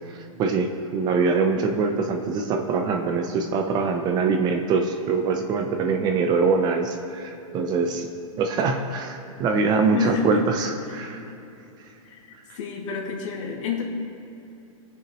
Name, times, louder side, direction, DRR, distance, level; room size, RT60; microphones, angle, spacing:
voice 1, 0.1-8.1 8.4-11.3, right 4 dB, 25° right, 5 dB, 0.5 m, -24 dB
voice 2, 9.9-10.4 11.0-11.2 12.0-12.2 12.6-13.8, left 6 dB, 60° left, -1 dB, 2.2 m, -29 dB
17.5 x 6.9 x 3.0 m, 2.9 s
hypercardioid pair, 145°, 18 cm